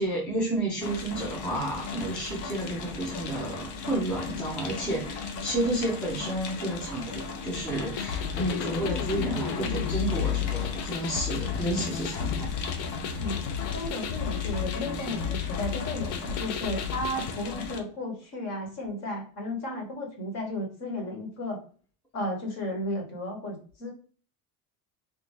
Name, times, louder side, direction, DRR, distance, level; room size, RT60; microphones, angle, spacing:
voice 1, 0.0-12.5, right 1 dB, 5° left, -3 dB, 0.3 m, -31 dB
sound 1, 0.8-17.8, left 4 dB, 85° left, 0.8 m, -37 dB
sound 2, 7.9-17.3, left 9 dB, 60° left, 0.5 m, -32 dB
voice 2, 13.7-21.6 22.1-23.9, left 1 dB, 45° left, 2 dB, 1.2 m, -34 dB
3.3 x 2.6 x 3.1 m, 0.41 s
cardioid pair, 180°, 38 cm